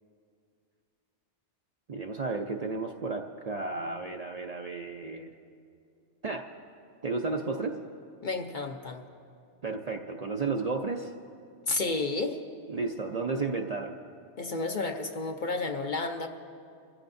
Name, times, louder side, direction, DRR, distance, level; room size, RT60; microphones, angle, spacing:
voice 1, 1.9-5.3 6.2-6.5 7.0-7.8 9.6-11.1 12.7-14.0, right 3 dB, 45° right, 2 dB, 0.5 m, -33 dB
voice 2, 8.2-9.0 11.7-12.4 14.4-16.3, left 3 dB, 50° left, 5 dB, 0.7 m, -31 dB
24.5 x 15.0 x 2.6 m, 2.4 s
omnidirectional pair, 1.2 m